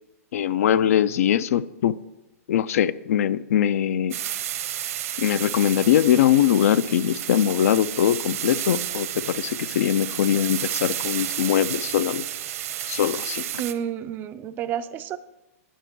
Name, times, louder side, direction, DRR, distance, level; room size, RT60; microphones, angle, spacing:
voice 1, 0.3-1.9 2.5-4.2 5.2-12.3 12.9-13.5, left 10 dB, 65° left, 16 dB, 0.4 m, -22 dB
sound 1, 4.1-13.7, right 11 dB, 65° right, 0.8 m, -31 dB
voice 2, 13.6-15.2, right 9 dB, 25° right, 12 dB, 0.4 m, -30 dB
10.0 x 5.8 x 6.0 m, 1.0 s
hypercardioid pair, 150°, 8 cm